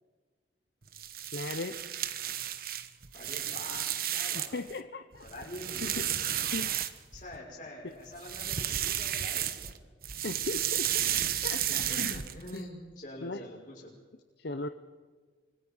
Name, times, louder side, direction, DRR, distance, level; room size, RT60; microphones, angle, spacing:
sound 1, 0.9-4.7 5.1-7.4 8.1-9.8 10.0-12.6, right 11 dB, 50° right, 1.1 m, -33 dB
voice 1, 1.3-1.8 4.3-5.2 5.8-6.2 6.5-6.7 10.2-11.1 11.4-12.2 12.5-12.6 13.2-13.5 14.4-14.7, left 2 dB, 60° left, 8 dB, 0.9 m, -37 dB
voice 2, 3.1-3.8 4.1-4.8 5.2-6.1 7.1-9.8 11.7-13.9, left 1 dB, 45° left, -5 dB, 6.3 m, -45 dB
25.5 x 24.0 x 5.6 m, 1.4 s
head